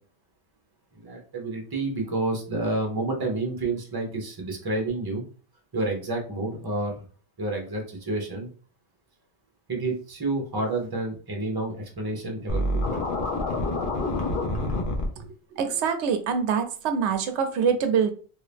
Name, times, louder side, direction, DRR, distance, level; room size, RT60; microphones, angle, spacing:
voice 1, 0.9-5.2 5.7-7.0 7.4-8.5 9.7-12.6, right 2 dB, 25° right, 0 dB, 0.8 m, -29 dB
Scratching (performance technique), 12.5-15.1, left 1 dB, 55° left, 0.9 m, -27 dB
voice 2, 15.2-18.1, right 6 dB, 85° right, 7 dB, 0.9 m, -25 dB
2.8 x 2.7 x 3.4 m, 0.39 s
omnidirectional pair, 1.1 m